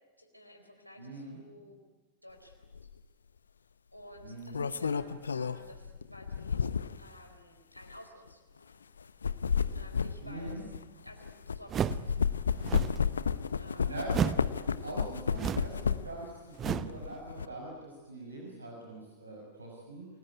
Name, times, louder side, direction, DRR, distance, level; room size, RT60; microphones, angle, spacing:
voice 1, 0.2-1.8 2.2-2.7 3.9-6.6 6.9-8.8 9.1-9.2 9.7-10.7 11.0-12.4 13.6-14.0, left 1 dB, 90° left, 3 dB, 4.3 m, -53 dB
voice 2, 1.0-1.4 4.2-4.6 10.2-10.6 13.5-20.1, right 2 dB, 80° right, -1 dB, 6.0 m, -43 dB
sound 1, 2.7-2.9 4.2-7.1 7.8-7.9 9.0-11.6 11.9-16.2 16.6-17.5, left 6 dB, 70° left, 0.9 m, -32 dB
sound 2, 11.7-12.1 12.6-13.0 14.1-14.5 15.3-15.8 16.6-17.0, right 8 dB, 25° right, 0.9 m, -32 dB
29.5 x 20.5 x 9.7 m, 1.3 s
figure-of-eight pair, 90°, 0 cm